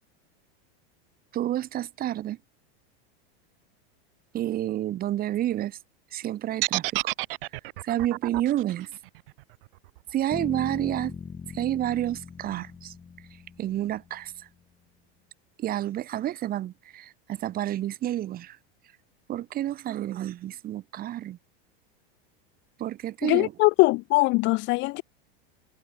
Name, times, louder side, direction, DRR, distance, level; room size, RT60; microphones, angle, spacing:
voice 1, 1.3-2.4 4.3-5.8 6.1-7.1 7.8-8.9 10.1-11.2 11.5-12.9 13.6-14.5 15.6-18.6 19.3-21.4 22.8-23.5, right 13 dB, 30° right, 5.4 m, -29 dB
sound 1, 6.6-10.7, right 21 dB, 60° right, 3.0 m, -31 dB
sound 2, 10.3-14.3, left 6 dB, 15° left, 6.8 m, -40 dB
voice 2, 23.2-25.0, left 23 dB, 35° left, 1.1 m, -21 dB
supercardioid pair, 160°, 31 cm